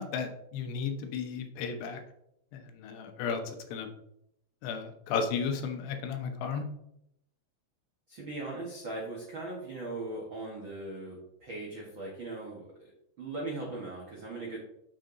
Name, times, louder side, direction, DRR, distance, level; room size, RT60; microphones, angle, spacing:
voice 1, 0.0-2.0 2.5-3.9 4.6-6.6, left 6 dB, 90° left, 6 dB, 3.2 m, -34 dB
voice 2, 8.1-12.9 13.2-14.6, right 2 dB, 75° right, -3 dB, 1.1 m, -39 dB
7.5 x 6.8 x 3.8 m, 0.78 s
omnidirectional pair, 4.7 m